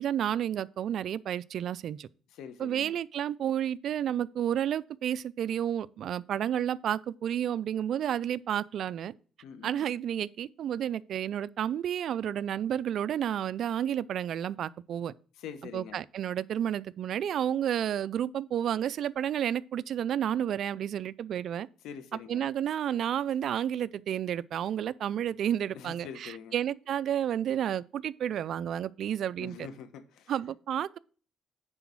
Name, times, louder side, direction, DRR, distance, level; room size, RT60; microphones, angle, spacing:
voice 1, 0.0-2.1 2.6-9.1 9.6-15.1 15.7-21.7 22.3-29.7 30.3-31.0, right 10 dB, 60° right, 0.4 m, -31 dB
voice 2, 2.3-2.9 9.4-9.9 15.4-16.0 21.8-22.4 25.7-26.6 29.4-30.3, left 7 dB, 80° left, 1.2 m, -44 dB
9.9 x 4.0 x 6.0 m
cardioid pair, 120°, 0 cm